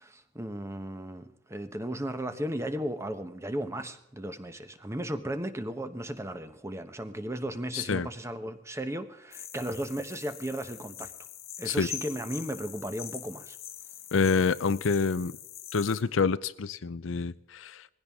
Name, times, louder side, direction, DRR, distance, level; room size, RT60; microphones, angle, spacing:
voice 1, 0.0-11.1 11.6-13.6, right 1 dB, 15° right, 9 dB, 1.0 m, -35 dB
voice 2, 7.7-8.1 11.7-11.9 14.1-15.4 15.7-17.9, left 5 dB, 90° left, 15 dB, 0.6 m, -27 dB
sound 1, 9.3-16.0, left 11 dB, 55° left, 1.3 m, -43 dB
20.0 x 16.0 x 3.6 m, 0.86 s
head